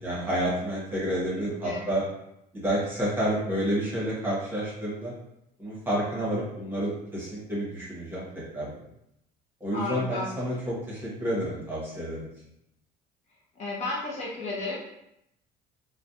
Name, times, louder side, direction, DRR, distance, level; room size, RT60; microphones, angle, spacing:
voice 1, 0.0-2.0 2.5-5.1 5.6-8.2 8.5-8.8 9.6-12.3, right 1 dB, 10° right, -7 dB, 0.9 m, -29 dB
voice 2, 1.3-1.8 9.7-10.3 13.6-14.8, left 2 dB, 40° left, -5 dB, 0.7 m, -33 dB
2.4 x 2.1 x 2.6 m, 0.80 s
cardioid pair, 125°, 18 cm